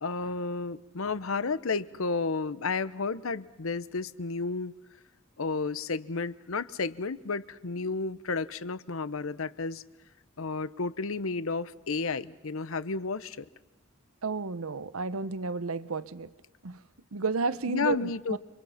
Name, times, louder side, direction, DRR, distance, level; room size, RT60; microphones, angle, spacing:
voice 1, 0.0-4.7 5.4-9.8 10.4-13.5 17.7-18.4, left 4 dB, 70° left, 16 dB, 0.8 m, -32 dB
voice 2, 14.2-16.3 16.6-16.8 17.1-18.4, right 4 dB, 80° right, 16 dB, 0.9 m, -32 dB
30.0 x 24.5 x 5.8 m, 1.1 s
head